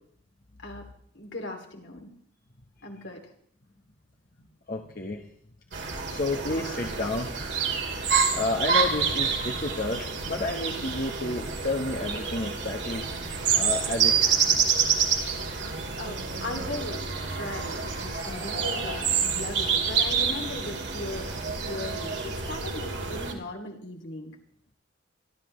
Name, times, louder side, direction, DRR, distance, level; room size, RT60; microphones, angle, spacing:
voice 1, 1.1-2.1 2.8-3.2 16.0-21.3 21.6-24.3, left 2 dB, 60° left, 2 dB, 2.8 m, -38 dB
voice 2, 4.4-5.2 6.1-7.3 8.3-13.1 13.5-14.6, left 2 dB, 45° left, 0 dB, 1.3 m, -31 dB
sound 1, 5.7-23.3, right 6 dB, 60° right, 2.4 m, -28 dB
26.5 x 12.5 x 3.3 m, 0.63 s
head